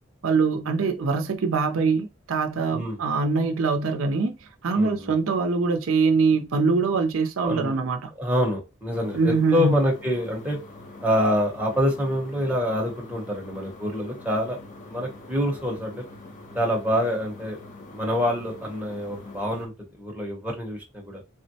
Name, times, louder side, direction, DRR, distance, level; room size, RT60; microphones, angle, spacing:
voice 1, 0.2-4.4 4.6-8.1 9.1-9.8, right 4 dB, 80° right, 0.5 m, -23 dB
voice 2, 4.7-5.1 7.4-7.7 8.2-10.6 11.0-14.6 14.9-16.0 16.5-17.6 17.9-21.2, equal, 10° right, 0.8 m, -26 dB
sound 1, 8.9-19.7, left 2 dB, 40° left, 0.7 m, -44 dB
3.5 x 2.1 x 2.7 m
head